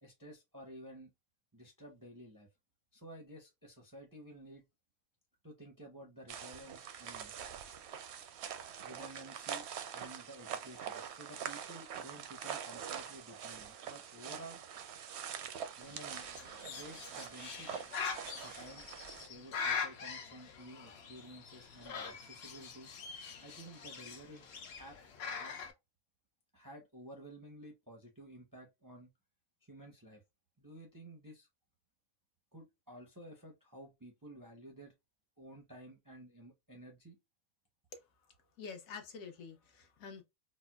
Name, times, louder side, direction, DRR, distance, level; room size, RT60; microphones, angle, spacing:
voice 1, 0.0-1.1 1.5-2.5 2.9-4.6 5.4-7.3 8.8-9.7 9.9-14.6 15.8-16.3 16.6-17.7 18.4-18.9 19.1-22.9 23.4-24.5 24.8-25.5 26.5-29.1 29.6-30.2 30.6-31.5 32.5-34.9 35.4-37.2, right 1 dB, 25° right, 0.5 m, -53 dB
sound 1, 6.3-19.3, right 8 dB, 65° right, 0.7 m, -44 dB
Bird, 15.8-25.7, left 6 dB, 60° left, 0.8 m, -43 dB
voice 2, 38.6-40.2, left 5 dB, 75° left, 1.2 m, -47 dB
4.2 x 2.0 x 2.2 m
omnidirectional pair, 1.4 m